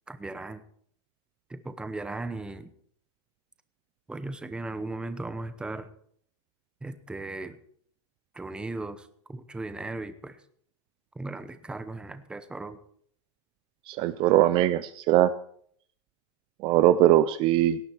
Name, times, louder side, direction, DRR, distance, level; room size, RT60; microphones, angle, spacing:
voice 1, 0.1-0.6 1.5-2.7 4.1-5.9 6.8-7.6 8.3-10.4 11.1-12.8, right 2 dB, 5° right, 11 dB, 0.9 m, -37 dB
voice 2, 13.9-15.3 16.6-17.8, right 13 dB, 35° right, 13 dB, 0.5 m, -21 dB
18.0 x 10.5 x 4.5 m, 0.62 s
supercardioid pair, 155°, 15 cm